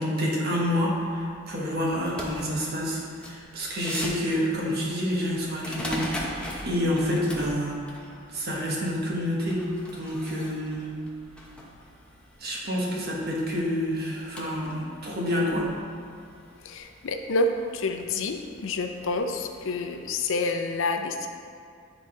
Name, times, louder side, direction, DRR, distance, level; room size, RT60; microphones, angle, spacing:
voice 1, 0.0-7.8 8.3-10.9 12.4-15.7, equal, 50° right, -3 dB, 1.3 m, -28 dB
sound 1, 0.6-20.2, equal, 5° left, 0.7 m, -42 dB
voice 2, 16.6-21.3, left 2 dB, 65° left, 5 dB, 0.5 m, -28 dB
9.6 x 3.9 x 3.7 m, 2.4 s
head